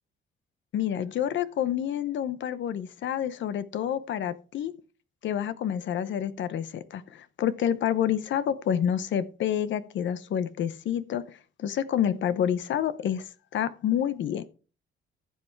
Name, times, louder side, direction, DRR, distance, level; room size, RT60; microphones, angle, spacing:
voice 1, 0.7-4.7 5.2-11.2 11.6-13.3 13.5-14.4, left 9 dB, 70° left, 14 dB, 0.9 m, -28 dB
15.0 x 5.6 x 4.6 m, 0.36 s
cardioid pair, 90°, 20 cm